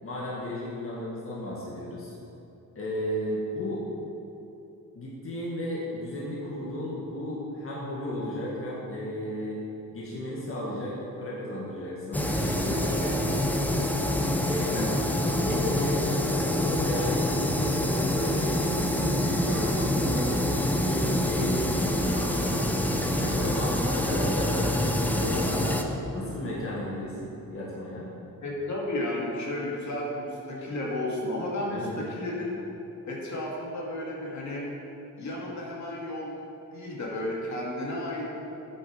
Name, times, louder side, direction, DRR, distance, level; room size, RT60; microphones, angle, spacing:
voice 1, 0.0-2.1 2.8-3.8 5.0-9.6 9.9-13.7 14.4-14.9 15.2-20.3 20.9-22.5 23.0-25.7 26.1-28.1 31.7-32.0, left 1 dB, 40° left, -6 dB, 1.9 m, -34 dB
sound 1, 12.1-25.8, left 1 dB, 5° left, 0.7 m, -26 dB
voice 2, 14.7-15.0 25.5-25.6 25.9-26.1 28.4-32.6 33.1-34.7 35.2-36.4 36.7-38.2, left 1 dB, 55° left, -4 dB, 2.3 m, -33 dB
9.6 x 6.9 x 5.1 m, 2.9 s
cardioid pair, 105°, 34 cm